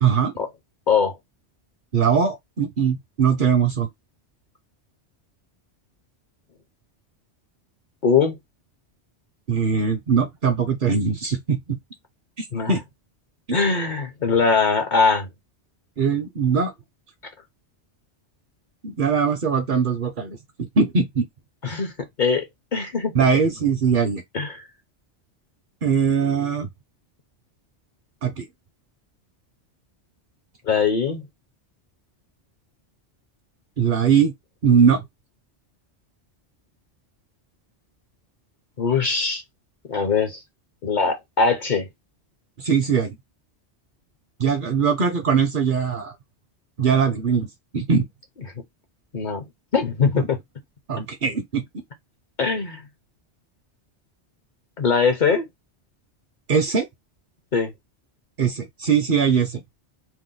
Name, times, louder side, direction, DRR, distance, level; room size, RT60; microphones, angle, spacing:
voice 1, 0.0-0.3 1.9-3.9 9.5-11.8 12.4-12.8 16.0-16.7 18.8-21.3 23.1-24.2 25.8-26.7 28.2-28.4 33.8-34.3 34.6-35.0 42.6-43.1 44.4-46.1 46.8-47.5 47.7-48.1 50.2-50.3 50.9-51.6 56.5-56.9 58.4-59.6, right 6 dB, 55° right, 0.7 m, -21 dB
voice 2, 0.9-1.2 8.0-8.4 12.5-12.7 13.5-15.3 21.6-21.9 22.2-22.5 22.7-23.1 24.3-24.6 30.6-31.2 38.8-39.4 39.9-40.4 40.8-41.9 49.1-49.4 49.7-50.4 52.4-52.8 54.8-55.5 57.5-57.7, left 5 dB, 50° left, 0.7 m, -21 dB
2.7 x 2.2 x 3.6 m
omnidirectional pair, 1.2 m